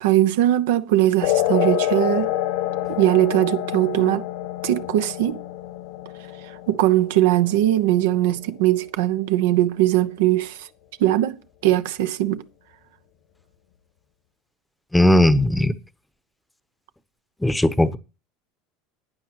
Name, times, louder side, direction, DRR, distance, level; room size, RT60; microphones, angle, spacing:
voice 1, 0.0-2.3 2.9-4.3 4.6-5.4 6.7-10.7 11.0-11.4 11.6-12.4, right 14 dB, 80° right, 0.8 m, -20 dB
sound 1, 1.2-8.2, left 13 dB, 75° left, 1.7 m, -27 dB
voice 2, 14.9-15.7 17.4-18.0, left 1 dB, 5° left, 0.8 m, -17 dB
15.0 x 9.6 x 3.0 m
supercardioid pair, 105°, 0 cm